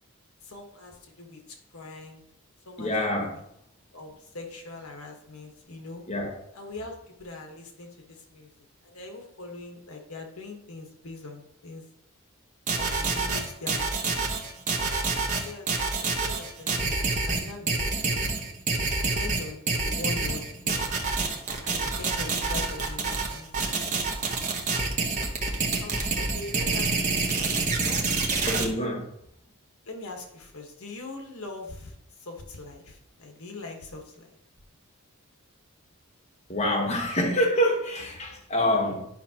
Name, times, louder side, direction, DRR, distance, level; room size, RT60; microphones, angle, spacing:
voice 1, 0.4-1.4 1.7-2.2 2.6-2.9 3.2-3.4 3.9-6.0 6.5-8.5 8.8-11.8 12.7-14.5 15.3-15.7 16.0-18.4 18.9-20.9 21.6-24.0 25.8-28.9 29.8-31.9 32.2-34.3, left 3 dB, 75° left, 1.3 m, -42 dB
voice 2, 2.8-3.3 6.1-6.3 28.5-29.0 36.5-39.1, equal, 30° left, 1.1 m, -26 dB
sound 1, 12.7-28.6, right 4 dB, 35° right, 1.0 m, -27 dB
10.5 x 5.6 x 2.9 m
head